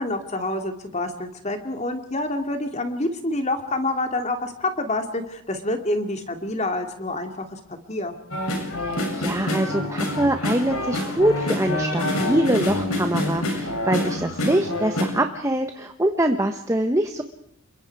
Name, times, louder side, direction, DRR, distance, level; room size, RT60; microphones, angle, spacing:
voice 1, 0.0-8.1, left 2 dB, 30° left, 6 dB, 2.6 m, -27 dB
sound 1, 8.3-15.0, left 1 dB, 75° left, 7.6 m, -26 dB
voice 2, 8.8-17.2, right 1 dB, 15° right, 6 dB, 1.1 m, -24 dB
28.0 x 23.5 x 4.8 m, 0.76 s
head